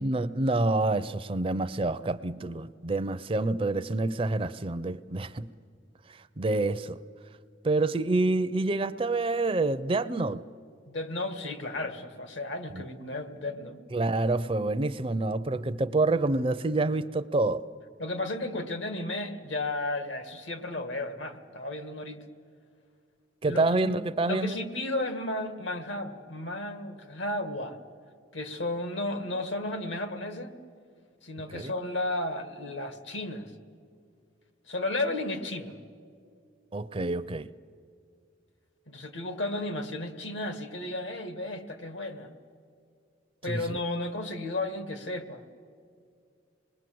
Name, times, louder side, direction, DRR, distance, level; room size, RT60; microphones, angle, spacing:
voice 1, 0.0-5.5 6.4-7.0 7.6-10.4 12.7-12.8 13.9-17.6 23.4-24.6 31.5-31.7 36.7-37.5 43.5-43.8, right 2 dB, 30° right, 0.5 m, -27 dB
voice 2, 10.9-13.8 18.0-22.2 23.4-23.9 24.3-27.8 28.3-30.5 31.2-33.5 34.7-35.8 38.9-42.3 43.4-45.4, left 2 dB, 80° left, 1.9 m, -33 dB
26.5 x 20.5 x 7.7 m
head